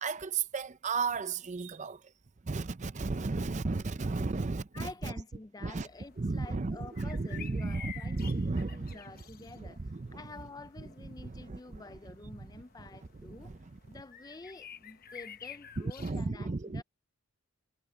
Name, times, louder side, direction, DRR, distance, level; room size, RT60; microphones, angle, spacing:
voice 1, 0.0-2.0 2.5-5.1 5.6-5.9 6.2-9.0 9.6-10.2 10.8-10.9 11.2-11.8 13.2-13.5 15.8-16.8, right 3 dB, 35° right, 0.5 m, -34 dB
voice 2, 4.7-13.5 13.8-16.8, left 3 dB, 15° left, 0.4 m, -49 dB
sound 1, 5.7-16.3, left 8 dB, 40° left, 0.9 m, -51 dB
head